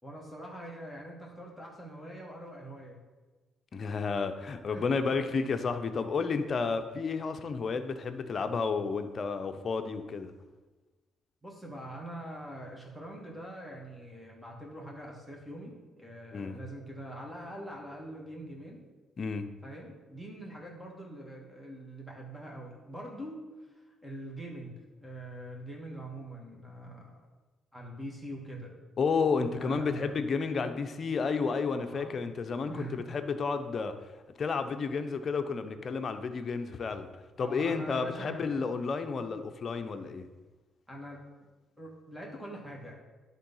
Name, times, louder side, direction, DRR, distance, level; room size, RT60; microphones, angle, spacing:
voice 1, 0.0-3.0 4.7-4.8 11.4-18.8 19.6-24.7 25.0-27.2 27.7-28.7 29.6-30.2 31.9-32.3 32.7-33.1 37.4-38.5 40.9-41.2 41.8-42.9, right 1 dB, 5° right, -2 dB, 2.3 m, -43 dB
voice 2, 3.7-10.3 16.3-16.6 19.2-19.5 29.0-33.9 34.4-37.1 37.4-40.3, left 5 dB, 45° left, 8 dB, 0.7 m, -31 dB
11.0 x 3.8 x 5.5 m, 1.2 s
cardioid pair, 90°, 0 cm